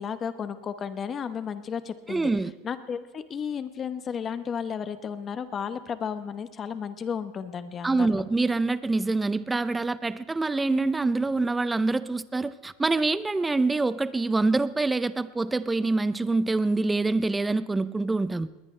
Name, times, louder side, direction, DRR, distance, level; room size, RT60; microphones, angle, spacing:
voice 1, 0.0-2.3 2.6-8.2, left 7 dB, 20° left, 11 dB, 0.9 m, -33 dB
voice 2, 2.1-2.5 7.8-18.5, right 3 dB, 10° right, 16 dB, 0.5 m, -25 dB
21.0 x 19.5 x 3.3 m, 1.2 s
supercardioid pair, 165°, 0 cm